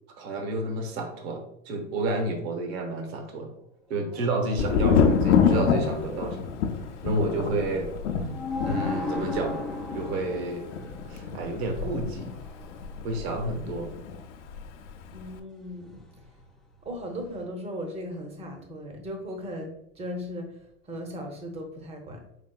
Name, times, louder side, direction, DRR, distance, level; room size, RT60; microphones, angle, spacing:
voice 1, 0.2-3.5 3.9-6.5 7.0-7.9 8.6-9.6 9.9-10.7 11.1-12.3 13.0-13.9, right 2 dB, 55° right, 4 dB, 1.0 m, -30 dB
sound 1, 3.9-5.5 8.0-8.1 8.2-12.8 15.9-16.4 17.2-17.4, left 3 dB, ahead, 0.3 m, -36 dB
Thunder, 4.6-14.2 14.5-15.2, left 6 dB, 70° left, 0.7 m, -27 dB
voice 2, 15.1-16.1 16.9-20.5 20.9-22.2, equal, 15° right, 4 dB, 0.7 m, -37 dB
5.0 x 3.5 x 2.3 m, 0.77 s
hypercardioid pair, 125°, 38 cm